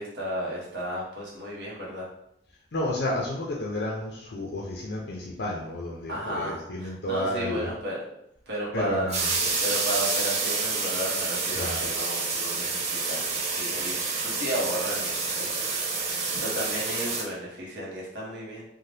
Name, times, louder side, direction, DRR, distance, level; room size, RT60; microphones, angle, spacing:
voice 1, 0.0-2.1 6.1-8.0 8.5-9.1 9.6-15.6 15.9-18.6, equal, 60° right, -4 dB, 0.9 m, -34 dB
voice 2, 2.7-7.7 8.7-9.5 11.6-11.8, left 1 dB, 65° left, -3 dB, 0.5 m, -31 dB
sound 1, 9.1-17.2, right 4 dB, 35° right, 0.5 m, -28 dB
2.7 x 2.1 x 3.2 m, 0.76 s
head